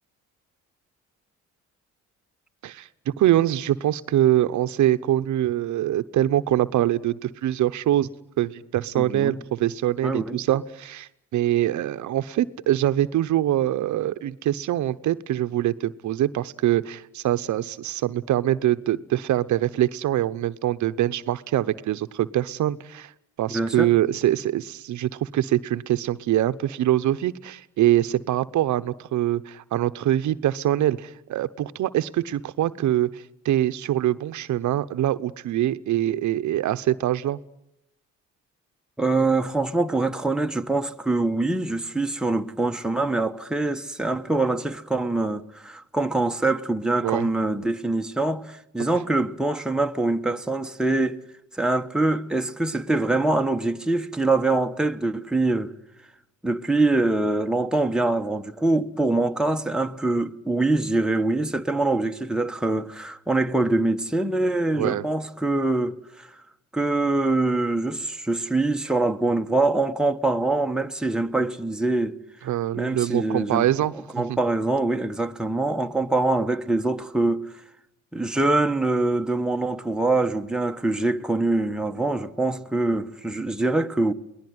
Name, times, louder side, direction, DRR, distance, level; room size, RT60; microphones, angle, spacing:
voice 1, 2.6-8.1 8.4-23.1 23.4-37.4 47.0-47.3 64.8-65.0 72.5-74.4, right 13 dB, 75° right, 0.9 m, -24 dB
voice 2, 9.0-9.4 10.0-10.4 23.5-23.9 39.0-51.2 51.5-55.7 56.4-66.3 66.7-72.2 72.7-73.7 74.1-77.5 78.1-84.1, right 2 dB, ahead, 1.2 m, -24 dB
23.0 x 19.0 x 9.5 m
cardioid pair, 90°, 30 cm